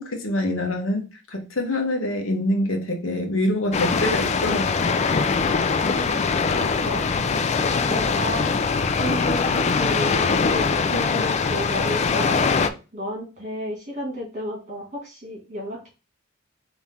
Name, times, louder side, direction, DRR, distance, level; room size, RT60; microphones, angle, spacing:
voice 1, 0.0-4.9, left 1 dB, 70° left, 2 dB, 1.2 m, -25 dB
sound 1, 3.7-12.7, left 5 dB, 35° left, 0.3 m, -22 dB
voice 2, 6.5-7.1 7.8-8.6 9.0-15.9, equal, 35° right, -2 dB, 2.3 m, -32 dB
4.2 x 3.1 x 3.7 m, 0.31 s
head